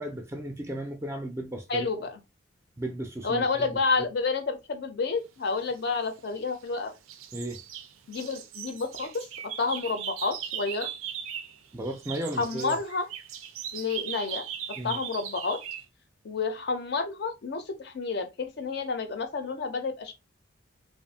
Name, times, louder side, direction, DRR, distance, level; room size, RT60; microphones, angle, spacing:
voice 1, 0.0-2.1 2.8-3.7 4.0-4.1 7.3-7.6 11.7-12.8 14.8-15.0, right 1 dB, 15° right, 0.3 m, -35 dB
voice 2, 1.7-2.2 3.2-6.9 8.1-9.3 9.6-10.9 12.4-13.1 13.7-14.5 14.8-15.6 16.2-20.1, left 4 dB, 50° left, 0.4 m, -30 dB
sound 1, 5.9-6.7 7.1-11.6 11.8-15.8, right 9 dB, 80° right, 0.4 m, -39 dB
2.6 x 2.4 x 2.6 m
head